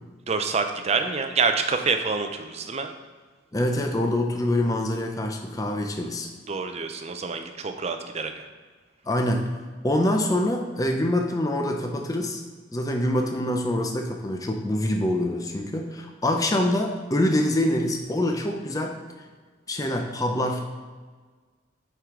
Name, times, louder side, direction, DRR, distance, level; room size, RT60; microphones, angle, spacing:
voice 1, 0.3-2.9 6.5-8.5, right 4 dB, 35° right, 6 dB, 0.5 m, -27 dB
voice 2, 3.5-6.3 9.1-9.5 9.8-12.4 12.7-19.0 19.7-20.6, left 1 dB, 20° left, 3 dB, 0.5 m, -25 dB
8.0 x 4.7 x 3.7 m, 1.4 s
head